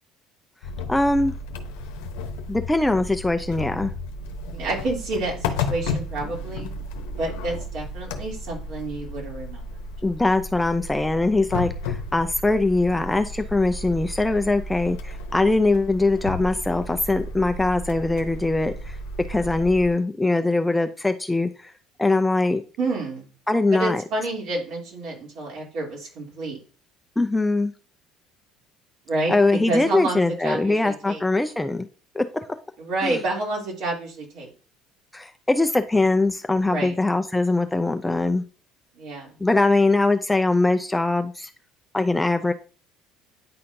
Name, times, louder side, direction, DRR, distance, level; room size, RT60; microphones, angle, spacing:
sound 1, 0.6-19.9, left 3 dB, 90° left, 0.8 m, -33 dB
voice 1, 0.9-1.3 2.5-3.9 10.0-19.0 19.3-21.7 22.0-22.6 23.5-24.0 27.2-27.7 29.3-31.9 32.1-32.2 33.0-33.2 35.1-38.4 39.4-41.5 41.9-42.5, left 2 dB, 10° left, 7 dB, 0.5 m, -22 dB
voice 2, 4.5-6.7 7.1-9.7 22.8-23.3 23.7-26.6 29.1-31.2 32.8-34.5 36.7-37.0 39.0-39.3, right 2 dB, 65° right, -2 dB, 2.8 m, -29 dB
9.6 x 4.2 x 2.6 m, 0.36 s
supercardioid pair, 100°, 0 cm